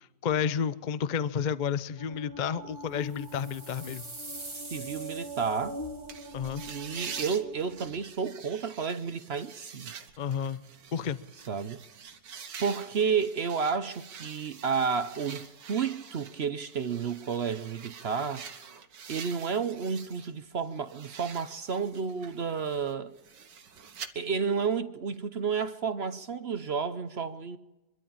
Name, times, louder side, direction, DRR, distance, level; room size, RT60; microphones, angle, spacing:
voice 1, 0.0-4.0 6.3-6.6 10.2-10.6 10.9-11.2, left 7 dB, 50° left, 0.5 m, -31 dB
sound 1, 2.0-8.0, right 1 dB, 10° left, 2.8 m, -43 dB
sound 2, 3.0-6.2, right 2 dB, 15° right, 2.0 m, -45 dB
voice 2, 4.7-5.8 6.7-9.9 11.5-11.8 12.6-18.4 19.1-23.1 24.1-27.6, right 6 dB, 50° right, 0.7 m, -31 dB
sound 3, 6.1-20.3 20.6-24.1, right 7 dB, 75° right, 2.0 m, -46 dB
24.0 x 13.0 x 8.6 m
omnidirectional pair, 1.9 m